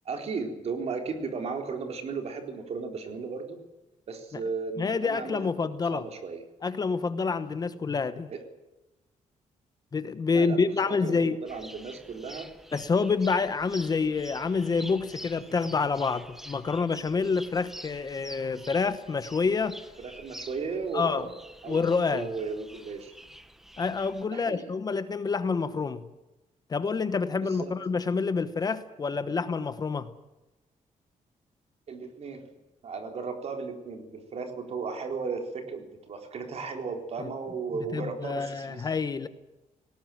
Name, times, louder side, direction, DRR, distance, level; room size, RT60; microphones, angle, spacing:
voice 1, 0.1-3.6 4.1-5.4 5.9-6.4 8.3-8.4 10.3-10.6 10.8-12.5 20.0-21.3 21.6-23.1 24.3-24.7 27.6-27.7 31.9-32.4 32.8-38.9, right 4 dB, 50° right, 5 dB, 4.1 m, -35 dB
voice 2, 4.8-6.0 6.6-8.3 9.9-11.4 12.7-19.8 20.9-21.3 21.7-22.3 23.8-26.0 26.7-30.1 37.2-37.3 37.9-39.3, left 4 dB, 30° left, 12 dB, 1.0 m, -27 dB
sound 1, 11.5-24.2, equal, 5° right, 1.1 m, -47 dB
19.0 x 19.0 x 9.1 m, 1.0 s
wide cardioid pair, 175°, 13 cm